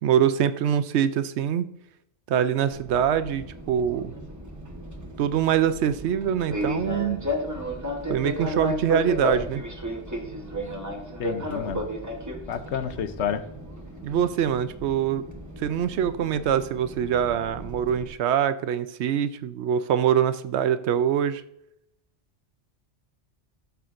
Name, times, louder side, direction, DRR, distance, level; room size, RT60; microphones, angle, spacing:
voice 1, 0.0-1.7 2.3-4.1 5.2-7.2 8.1-9.6 14.0-15.2 15.6-21.4, right 9 dB, 75° right, 12 dB, 0.8 m, -24 dB
Fixed-wing aircraft airplane, 2.7-18.1, equal, 15° right, 1.0 m, -34 dB
voice 2, 11.2-11.8 12.5-13.4, left 8 dB, 75° left, 10 dB, 1.0 m, -30 dB
13.5 x 6.9 x 2.5 m, 0.78 s
omnidirectional pair, 1.2 m